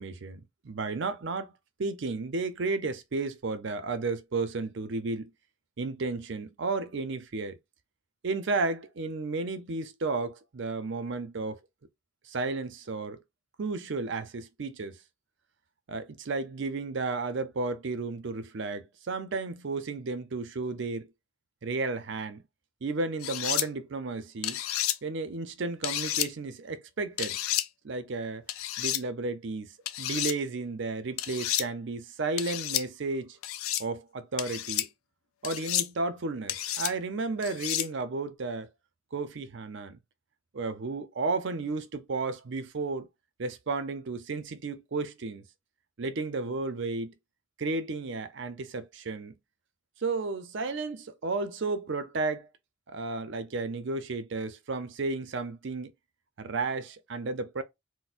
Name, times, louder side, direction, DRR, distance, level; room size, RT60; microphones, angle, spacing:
voice 1, 0.0-1.5 1.8-5.3 5.8-7.6 8.2-11.6 12.2-13.2 13.6-15.0 15.9-21.1 21.6-22.4 22.8-24.6 25.0-27.4 27.8-28.4 28.8-29.7 30.0-33.4 33.8-34.9 35.4-38.7 39.1-40.0 40.5-43.1 43.4-45.4 46.0-47.1 47.6-49.3 50.0-52.5 52.9-55.9 56.4-57.6, right 3 dB, 55° right, 0.5 m, -33 dB
sound 1, 23.2-23.7 24.4-25.0 25.8-26.3 27.2-27.7 28.5-29.0 29.9-30.3 31.2-31.6 32.4-32.8 33.4-33.8 34.4-34.9 35.4-35.9 36.5-36.9 37.4-37.9, left 13 dB, 80° left, 0.4 m, -30 dB
4.2 x 2.0 x 2.4 m
head